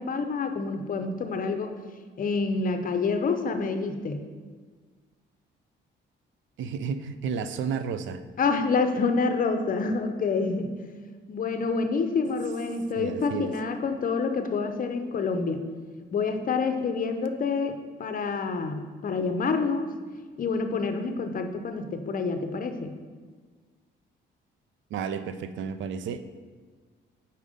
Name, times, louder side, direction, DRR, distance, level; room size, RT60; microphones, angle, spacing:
voice 1, 0.0-1.7 2.2-4.3 8.4-10.7 11.3-15.6 16.1-19.9 20.4-23.0, left 4 dB, 45° left, 7 dB, 0.6 m, -27 dB
voice 2, 6.6-8.2 13.0-13.5 24.9-26.2, right 6 dB, 70° right, 11 dB, 0.4 m, -32 dB
5.2 x 4.3 x 5.0 m, 1.5 s
cardioid pair, 90°, 20 cm